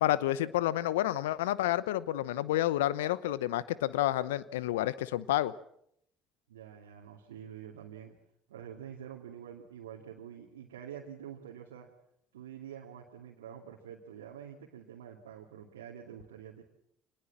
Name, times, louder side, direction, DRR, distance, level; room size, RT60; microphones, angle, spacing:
voice 1, 0.0-5.5, left 14 dB, 80° left, 18 dB, 0.9 m, -29 dB
voice 2, 6.5-8.1 8.5-11.9 12.3-16.6, right 9 dB, 85° right, -2 dB, 2.6 m, -47 dB
25.0 x 20.0 x 7.4 m, 0.73 s
hypercardioid pair, 55°, 0 cm